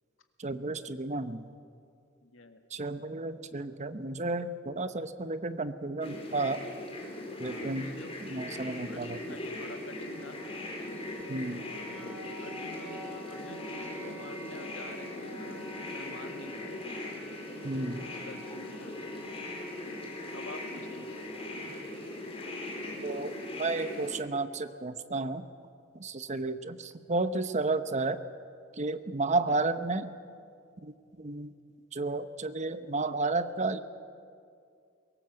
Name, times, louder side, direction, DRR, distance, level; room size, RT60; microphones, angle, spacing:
voice 1, 0.4-1.4 2.7-6.7 7.4-7.9 8.2-9.4 11.3-11.6 17.6-18.1 23.0-25.5 25.9-28.2 28.8-30.1 30.8-31.5 31.9-33.8, right 3 dB, 35° right, 11 dB, 0.9 m, -32 dB
voice 2, 2.2-2.6 4.8-4.9 7.4-8.2 8.9-10.4 11.5-12.1 12.4-15.6 15.9-17.0 18.0-19.5 20.3-21.3 29.5-29.6, left 2 dB, 85° left, 7 dB, 1.8 m, -49 dB
sound 1, 6.0-24.1, left 1 dB, 30° left, 4.3 m, -40 dB
sound 2, 9.8-23.7, equal, 5° left, 7.5 m, -50 dB
22.5 x 18.5 x 7.9 m, 2.4 s
head